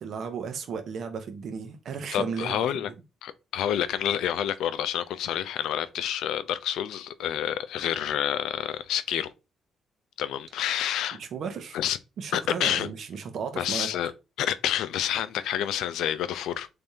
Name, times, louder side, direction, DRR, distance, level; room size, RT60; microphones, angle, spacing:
voice 1, 0.0-2.8 11.1-11.8 12.2-13.9, right 6 dB, 65° right, 0.8 m, -34 dB
voice 2, 2.1-2.9 3.2-9.3 10.2-11.2 11.7-12.0 12.3-12.9 13.6-14.1 14.4-16.7, left 10 dB, 85° left, 0.3 m, -28 dB
3.5 x 3.4 x 2.7 m
cardioid pair, 90°, 0 cm